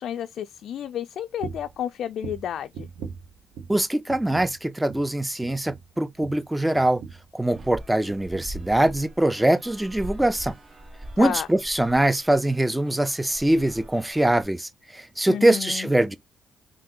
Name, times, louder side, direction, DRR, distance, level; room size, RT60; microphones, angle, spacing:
voice 1, 0.0-2.9 11.2-11.5 15.3-15.9, left 10 dB, 70° left, 0.3 m, -31 dB
sound 1, 1.4-1.8 2.2-3.8 4.1-4.6 4.9-5.1 5.4-7.8 8.1-8.6 8.9-9.1 9.4-9.5, right 6 dB, 80° right, 0.9 m, -40 dB
voice 2, 3.7-7.0 7.3-10.5 11.2-16.2, right 1 dB, 10° right, 0.4 m, -23 dB
sound 2, 7.5-14.4, right 1 dB, 35° right, 0.9 m, -42 dB
3.7 x 2.5 x 3.7 m
cardioid pair, 90°, 0 cm